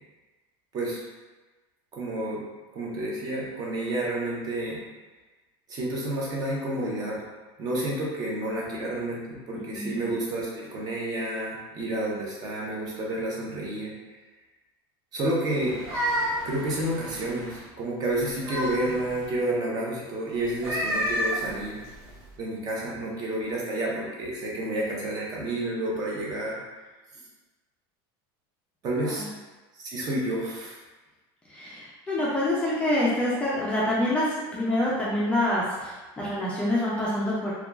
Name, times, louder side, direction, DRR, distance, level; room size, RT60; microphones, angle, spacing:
voice 1, 1.9-2.4 2.7-4.8 5.7-7.2 7.6-13.9 15.1-16.1 16.4-21.8 22.4-26.6 28.8-29.3 29.7-30.8, right 1 dB, 30° right, -4 dB, 0.6 m, -30 dB
sound 1, 15.6-17.7 18.1-19.3 20.5-22.3, equal, 80° right, 0.8 m, -31 dB
voice 2, 31.5-37.5, left 1 dB, 10° left, -8 dB, 0.4 m, -26 dB
2.8 x 2.2 x 2.3 m, 1.2 s
supercardioid pair, 150°, 13 cm